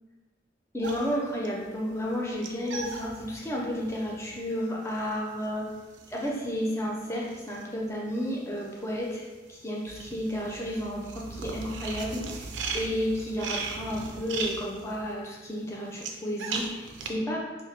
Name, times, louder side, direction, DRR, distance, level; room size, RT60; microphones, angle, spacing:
voice 1, 0.7-5.7 6.1-17.5, equal, 15° left, -3 dB, 0.5 m, -32 dB
sound 1, 0.8-8.3 8.6-17.1, right 4 dB, 80° right, 0.4 m, -38 dB
3.6 x 2.8 x 2.9 m, 1.3 s
head